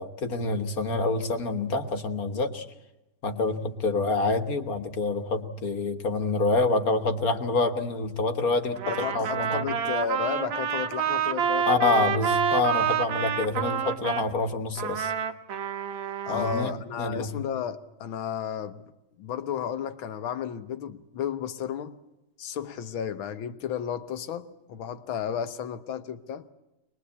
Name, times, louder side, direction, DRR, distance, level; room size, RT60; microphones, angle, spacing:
voice 1, 0.0-2.7 3.2-9.6 11.7-15.1 16.3-17.4, left 3 dB, 50° left, 1.6 m, -27 dB
Trumpet, 8.8-14.3 14.8-16.7, right 8 dB, 75° right, 1.9 m, -28 dB
voice 2, 8.9-12.1 16.3-18.9 19.2-22.0 22.4-26.5, left 8 dB, 85° left, 1.9 m, -33 dB
23.0 x 21.0 x 8.4 m
omnidirectional pair, 2.2 m